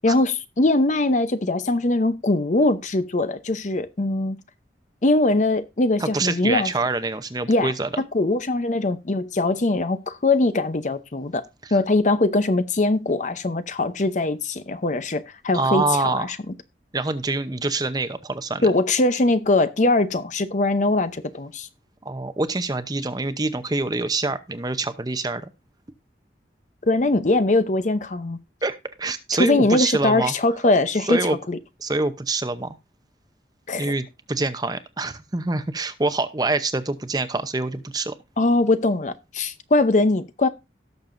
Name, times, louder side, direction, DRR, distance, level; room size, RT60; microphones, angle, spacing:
voice 1, 0.0-4.4 5.0-6.7 7.5-11.4 11.7-16.3 18.6-21.7 26.8-28.4 29.4-31.2 31.5-31.6 33.7-33.9 38.4-40.5, left 2 dB, 45° left, 0.7 m, -21 dB
voice 2, 6.0-7.9 11.6-11.8 15.5-16.3 16.9-18.7 22.0-25.5 28.6-30.3 31.0-31.4 31.8-32.8 33.8-38.2, right 3 dB, 20° right, 0.7 m, -25 dB
17.5 x 6.7 x 2.6 m
head